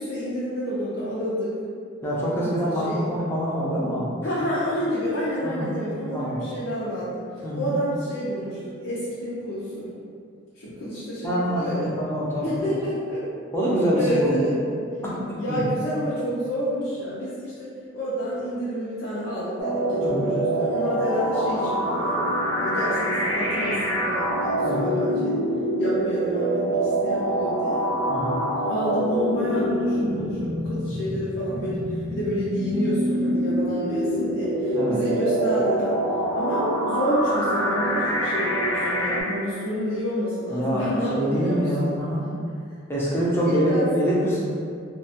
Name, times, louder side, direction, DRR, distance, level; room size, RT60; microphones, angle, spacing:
voice 1, 0.0-1.5 2.4-2.5 2.8-3.0 4.2-7.3 7.5-9.9 10.6-11.9 12.4-13.2 13.9-14.6 15.4-17.7 17.9-25.4 25.8-27.8 28.7-36.0 36.3-41.9 43.4-43.9, equal, 90° left, -10 dB, 0.6 m, -29 dB
voice 2, 2.0-4.1 5.4-5.7 6.1-6.4 7.4-7.7 11.2-12.7 13.5-14.5 15.0-15.6 20.0-20.4 24.6-24.9 28.1-28.4 34.7-35.0 40.5-42.2 42.9-44.5, equal, 10° left, -7 dB, 0.5 m, -25 dB
sound 1, 19.6-39.2, right 1 dB, 50° right, 0.6 m, -25 dB
2.3 x 2.2 x 2.8 m, 2.3 s
head